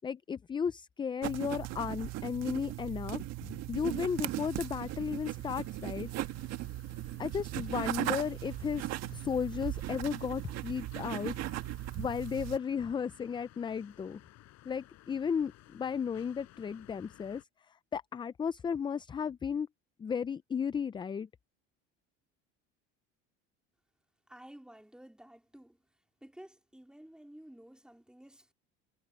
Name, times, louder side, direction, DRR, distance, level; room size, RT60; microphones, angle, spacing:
voice 1, 0.0-6.1 7.2-11.4 12.0-14.2 14.7-17.4 17.9-19.7 20.0-21.3, left 7 dB, 15° left, 0.4 m, -34 dB
sound 1, 1.2-12.6, right 15 dB, 60° right, 1.6 m, -38 dB
sound 2, 3.9-17.4, left 16 dB, 60° left, 4.8 m, -58 dB
voice 2, 24.3-25.8 26.2-28.5, right 1 dB, 5° right, 3.7 m, -53 dB
cardioid pair, 120°, 30 cm